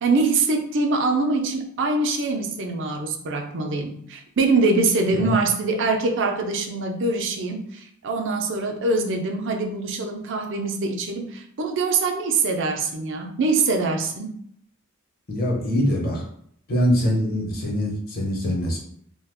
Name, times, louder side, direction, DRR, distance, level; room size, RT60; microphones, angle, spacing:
voice 1, 0.0-14.4, right 3 dB, 60° right, 4 dB, 0.5 m, -24 dB
voice 2, 15.3-16.2 16.7-18.8, equal, 45° left, -1 dB, 0.9 m, -23 dB
2.8 x 2.3 x 3.5 m, 0.65 s
head